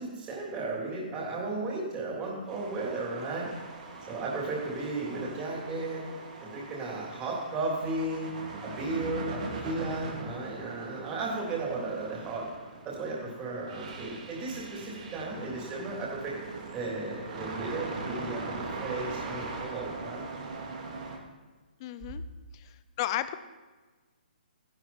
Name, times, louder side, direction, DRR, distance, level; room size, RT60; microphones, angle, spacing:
voice 1, 0.0-3.5 4.1-6.1 6.4-8.3 8.6-12.5 12.8-16.4 16.7-20.3, right 2 dB, 20° right, -3 dB, 3.4 m, -35 dB
sound 1, 2.5-21.2, right 3 dB, 45° right, 2.1 m, -41 dB
voice 2, 21.8-22.2 22.5-23.3, left 13 dB, 30° left, 13 dB, 0.6 m, -34 dB
14.0 x 11.5 x 4.4 m, 1.3 s
hypercardioid pair, 155°, 5 cm